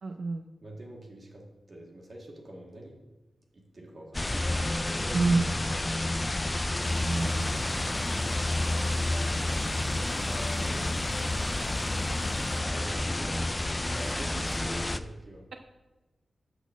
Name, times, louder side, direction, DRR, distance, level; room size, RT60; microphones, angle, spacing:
voice 1, 0.0-0.5 5.1-5.6 7.0-7.7, right 3 dB, 90° right, 6 dB, 0.4 m, -28 dB
voice 2, 0.6-3.0 3.5-6.6 10.2-10.8 12.4-15.5, right 1 dB, 40° right, 0 dB, 1.7 m, -47 dB
sound 1, 4.1-15.0, left 1 dB, 20° left, 0.3 m, -30 dB
sound 2, 6.8-12.6, left 1 dB, 55° left, 2.0 m, -40 dB
8.0 x 4.1 x 7.0 m, 1.1 s
wide cardioid pair, 135°, 0 cm